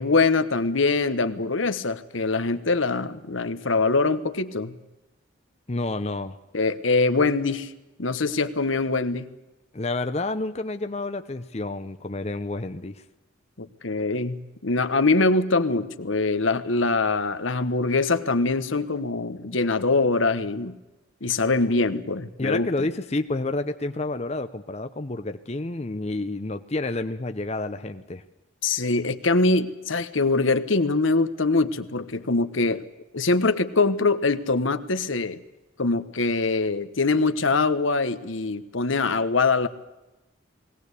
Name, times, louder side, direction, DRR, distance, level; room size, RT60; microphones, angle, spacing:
voice 1, 0.0-4.7 6.5-7.7 8.0-9.3 13.6-20.8 21.2-22.9 28.6-32.8 33.1-35.4 35.8-39.7, left 3 dB, 80° left, 12 dB, 1.2 m, -23 dB
voice 2, 5.7-6.4 9.7-13.0 22.4-28.2, left 2 dB, 30° left, 9 dB, 0.7 m, -29 dB
20.5 x 17.5 x 8.2 m, 1.0 s
head